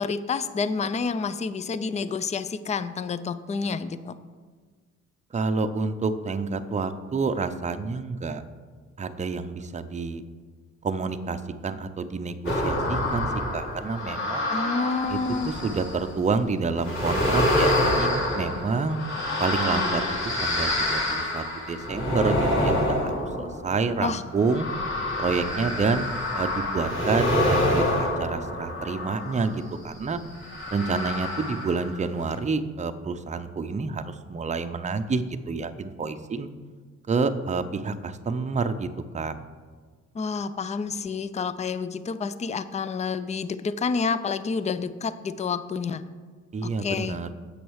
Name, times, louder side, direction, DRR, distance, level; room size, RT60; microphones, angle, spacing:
voice 1, 0.0-4.2 14.5-15.5 24.0-24.2 40.1-46.0 46.6-47.2, left 5 dB, 25° left, 14 dB, 0.4 m, -29 dB
voice 2, 5.3-8.4 9.0-10.2 10.8-14.5 15.1-15.2 15.5-18.1 18.3-19.0 19.4-24.7 25.2-26.1 26.3-30.2 30.7-36.5 37.1-38.9 39.1-39.3 46.5-47.3, right 4 dB, 25° right, 9 dB, 0.6 m, -28 dB
sound 1, 12.5-16.1 16.8-29.6 30.4-32.0 32.3-32.4, left 1 dB, 40° left, 3.0 m, -27 dB
8.0 x 6.2 x 6.3 m, 1.5 s
cardioid pair, 90°, 30 cm